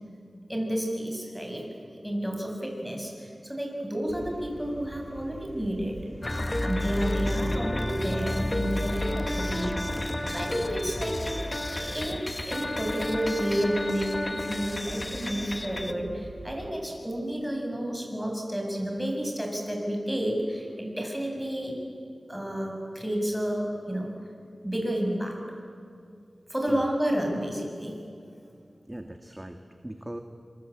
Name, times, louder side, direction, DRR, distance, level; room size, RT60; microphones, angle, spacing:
voice 1, 0.5-1.6 2.0-6.0 6.6-9.8 10.3-21.8 22.3-24.1 24.6-25.4 26.5-27.9, equal, 5° right, 1 dB, 7.9 m, -31 dB
sound 1, 4.1-16.7, right 2 dB, 65° right, 2.8 m, -44 dB
sound 2, 6.2-15.9, left 1 dB, 30° left, 1.5 m, -31 dB
voice 2, 28.9-30.2, right 1 dB, 20° right, 6 dB, 1.8 m, -40 dB
26.5 x 24.5 x 8.8 m, 2.3 s
wide cardioid pair, 50°, 0 cm